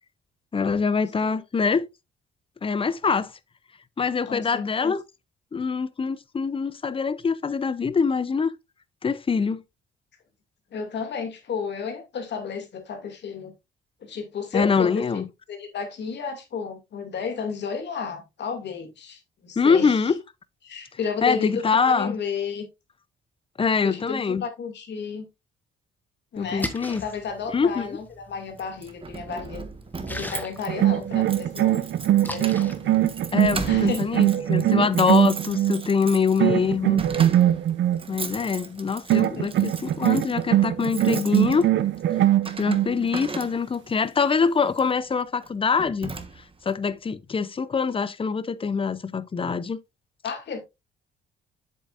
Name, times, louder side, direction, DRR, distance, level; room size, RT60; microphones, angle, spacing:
voice 1, 0.5-1.9 2.6-3.3 4.0-5.0 5.5-8.5 9.0-9.6 14.5-15.3 19.6-20.2 21.2-22.2 23.6-24.4 26.4-27.0 27.5-28.0 33.3-37.0 38.1-41.7 42.6-46.1 46.6-49.8, left 5 dB, 25° left, 0.7 m, -24 dB
voice 2, 4.3-4.9 10.7-13.5 14.0-15.2 15.5-20.1 20.6-22.6 23.8-25.3 26.3-26.7 27.0-29.6 30.1-31.8 32.1-32.9 33.6-34.0 39.4-39.5 50.2-50.6, left 6 dB, 60° left, 2.5 m, -33 dB
Splash splatter, 26.4-33.7, left 1 dB, 10° left, 1.3 m, -40 dB
Keys jangling, 28.6-43.9 44.7-45.0 45.4-45.5 45.8-46.7, right 4 dB, 25° right, 1.3 m, -38 dB
sound 1, 30.7-35.9 36.4-38.0 39.1-42.9, right 12 dB, 70° right, 0.8 m, -22 dB
7.7 x 7.3 x 2.5 m
cardioid pair, 90°, 20 cm